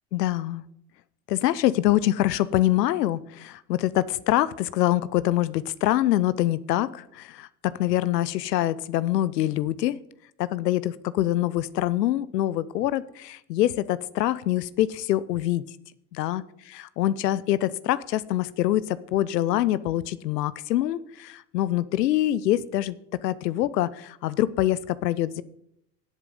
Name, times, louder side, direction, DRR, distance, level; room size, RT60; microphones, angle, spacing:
voice 1, 0.1-0.6 1.3-10.0 10.4-15.6 16.2-16.4 16.7-23.0 23.2-25.4, left 14 dB, 85° left, 18 dB, 0.7 m, -25 dB
16.5 x 7.7 x 5.3 m, 0.77 s
hypercardioid pair, 70°, 47 cm